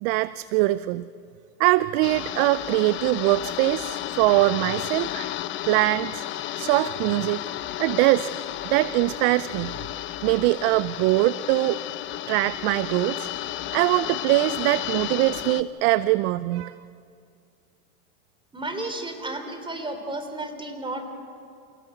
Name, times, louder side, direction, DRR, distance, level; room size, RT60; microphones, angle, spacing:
voice 1, 0.0-1.1 1.6-5.3 5.6-6.3 6.6-7.4 7.8-8.3 8.7-9.7 10.2-11.8 12.3-13.3 13.7-16.7, right 18 dB, 40° right, 17 dB, 0.5 m, -22 dB
sound 1, 2.0-15.6, left 13 dB, 25° left, 0.6 m, -33 dB
voice 2, 18.5-21.0, right 2 dB, 10° right, 6 dB, 3.3 m, -32 dB
28.0 x 17.0 x 8.0 m, 2.4 s
hypercardioid pair, 120°, 45 cm